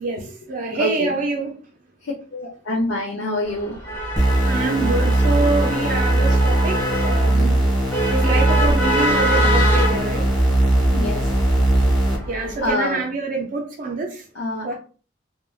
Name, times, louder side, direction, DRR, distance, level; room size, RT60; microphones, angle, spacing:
voice 1, 0.0-1.5 4.4-7.5 8.1-10.2 12.3-14.2 14.6-14.7, right 3 dB, 45° right, 0.4 m, -25 dB
voice 2, 0.8-1.1 2.0-3.8 10.9-11.3 12.4-13.0 14.3-14.7, left 1 dB, 70° left, 0.5 m, -26 dB
sound 1, 3.5-12.7, equal, 15° left, 0.8 m, -25 dB
sound 2, 4.2-12.2, right 1 dB, 5° right, 1.1 m, -19 dB
3.1 x 2.1 x 2.2 m
head